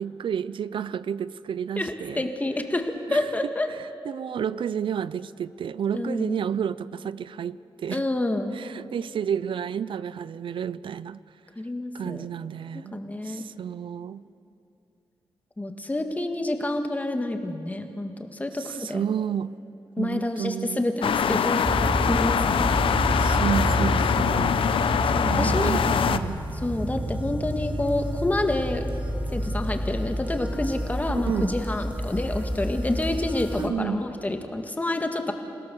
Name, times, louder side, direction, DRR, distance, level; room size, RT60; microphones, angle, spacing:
voice 1, 0.0-2.3 3.1-3.3 3.7-8.0 8.5-11.2 11.9-14.2 18.6-19.5 20.0-20.8 23.2-24.6 25.3-26.4 31.1-31.5 33.6-34.0, right 8 dB, 70° right, 17 dB, 0.4 m, -31 dB
voice 2, 1.8-3.7 5.9-6.4 7.9-8.6 11.6-12.3 12.7-13.4 15.6-19.0 20.0-21.7 22.0-22.8 25.0-26.1 26.6-28.8 29.3-35.3, left 2 dB, 15° left, 5 dB, 1.8 m, -28 dB
sound 1, 21.0-26.2, left 7 dB, 80° left, 0.7 m, -24 dB
sound 2, 21.6-33.7, equal, 15° right, 1.8 m, -29 dB
28.0 x 17.0 x 7.0 m, 2.9 s
wide cardioid pair, 120°, 9 cm